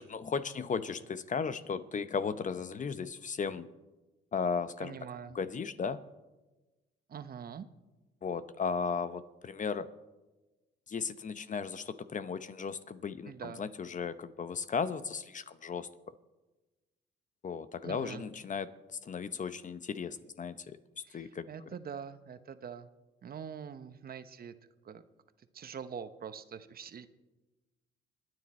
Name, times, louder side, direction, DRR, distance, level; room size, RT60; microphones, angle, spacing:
voice 1, 0.0-3.7 4.3-5.0 5.3-6.0 8.2-9.9 10.9-15.9 17.4-18.7 19.0-20.8 21.1-21.5, left 5 dB, 40° left, 13 dB, 0.8 m, -35 dB
voice 2, 4.8-5.4 7.1-7.7 13.3-13.6 17.8-18.3 21.1-22.9 23.2-24.5 24.8-25.0 25.5-27.1, right 7 dB, 50° right, 11 dB, 0.9 m, -44 dB
26.0 x 9.7 x 4.3 m, 1.1 s
cardioid pair, 90°, 20 cm